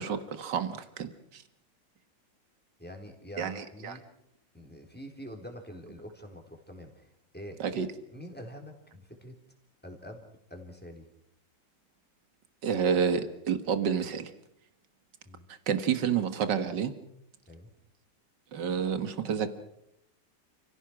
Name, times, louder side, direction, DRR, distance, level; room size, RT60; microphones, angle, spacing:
voice 1, 0.0-1.4 3.4-4.0 7.6-7.9 12.6-14.3 15.7-16.9 18.5-19.5, right 7 dB, 70° right, 9 dB, 2.2 m, -29 dB
voice 2, 2.8-4.1 4.5-7.6 8.1-9.4 9.8-11.1 15.3-15.4 17.5-17.7, equal, 5° left, 3 dB, 3.9 m, -46 dB
30.0 x 16.5 x 6.2 m, 0.78 s
omnidirectional pair, 2.0 m